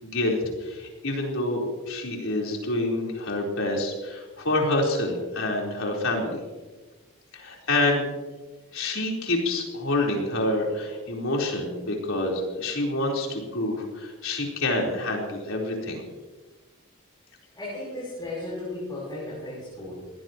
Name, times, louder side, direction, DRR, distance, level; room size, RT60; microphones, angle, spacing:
voice 1, 0.0-6.4 7.3-8.0 8.7-16.0, left 2 dB, 65° left, -1 dB, 4.2 m, -27 dB
voice 2, 17.5-20.2, left 2 dB, 20° left, -8 dB, 7.0 m, -35 dB
22.0 x 17.5 x 3.1 m, 1.2 s
head